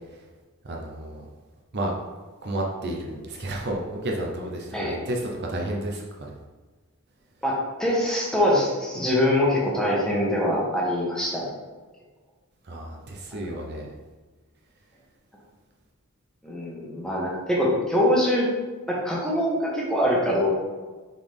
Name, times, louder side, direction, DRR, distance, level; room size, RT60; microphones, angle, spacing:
voice 1, 0.6-1.3 1.7-1.9 2.4-6.3 12.7-13.9, right 1 dB, 50° right, 0 dB, 0.7 m, -31 dB
voice 2, 7.4-11.6 16.4-18.5 18.9-20.6, left 1 dB, 5° left, -5 dB, 1.3 m, -24 dB
7.3 x 4.1 x 3.5 m, 1.3 s
head